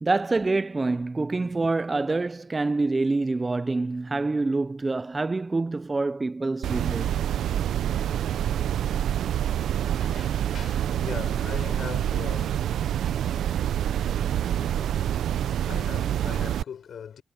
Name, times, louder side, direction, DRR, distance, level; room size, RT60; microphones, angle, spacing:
voice 1, 0.0-7.2, right 3 dB, 20° right, 0.4 m, -26 dB
sound 1, 6.6-16.6, right 10 dB, 80° right, 0.5 m, -26 dB
voice 2, 9.8-17.2, left 8 dB, 60° left, 6.6 m, -42 dB
cardioid pair, 115°, 0 cm